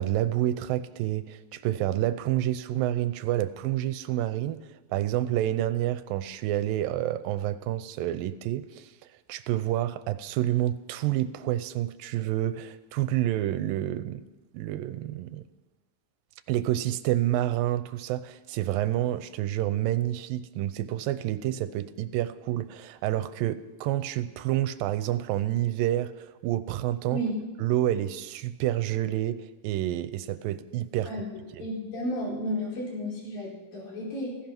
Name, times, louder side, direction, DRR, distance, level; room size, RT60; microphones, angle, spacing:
voice 1, 0.0-8.9 9.3-14.2 14.5-15.4 16.5-27.2 27.6-31.1 31.6-31.7, right 13 dB, 80° right, 13 dB, 2.4 m, -28 dB
voice 2, 31.6-34.4, equal, 75° left, -4 dB, 6.5 m, -32 dB
16.0 x 15.0 x 6.0 m, 1.1 s
omnidirectional pair, 4.1 m